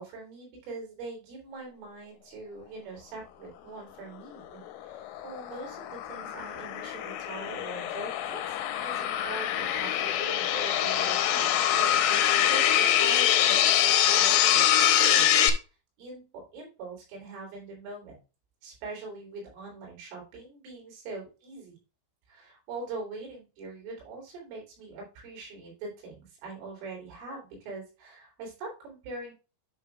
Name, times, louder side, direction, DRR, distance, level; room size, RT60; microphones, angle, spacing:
voice 1, 0.0-15.5 16.0-18.2 18.6-21.8 22.3-29.3, right 3 dB, 75° right, -2 dB, 6.1 m, -42 dB
sound 1, 4.7-15.5, left 11 dB, 85° left, 3.3 m, -24 dB
10.0 x 5.6 x 2.3 m, 0.31 s
omnidirectional pair, 5.8 m